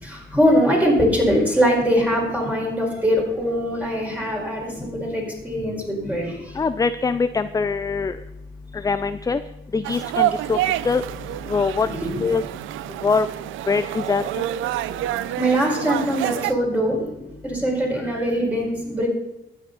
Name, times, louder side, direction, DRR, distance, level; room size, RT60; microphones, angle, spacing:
voice 1, 0.0-6.4 11.9-12.2 15.4-17.1 17.4-19.1, equal, 5° right, -2 dB, 4.8 m, -22 dB
voice 2, 6.6-8.2 8.8-9.4 9.7-10.6 10.8-11.0 11.5-11.9 12.2-12.4 13.0-13.3 13.7-14.2, left 4 dB, 20° left, 12 dB, 0.4 m, -22 dB
sound 1, 9.8-16.5, right 14 dB, 85° right, 0.5 m, -27 dB
13.0 x 9.4 x 4.0 m, 0.95 s
cardioid pair, 90°, 20 cm